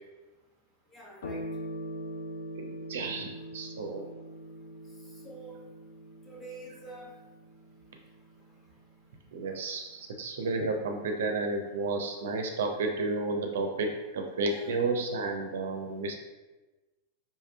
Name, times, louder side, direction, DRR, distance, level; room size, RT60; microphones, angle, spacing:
voice 1, 0.9-1.4 5.2-5.6 6.3-7.1 14.4-14.9, right 2 dB, 10° left, -4 dB, 0.9 m, -47 dB
sound 1, 1.2-10.1, equal, 60° left, 0.5 m, -43 dB
voice 2, 2.6-4.1 9.3-16.1, right 3 dB, 60° right, 3 dB, 0.4 m, -32 dB
4.8 x 2.7 x 2.2 m, 1.2 s
figure-of-eight pair, 90°, 0 cm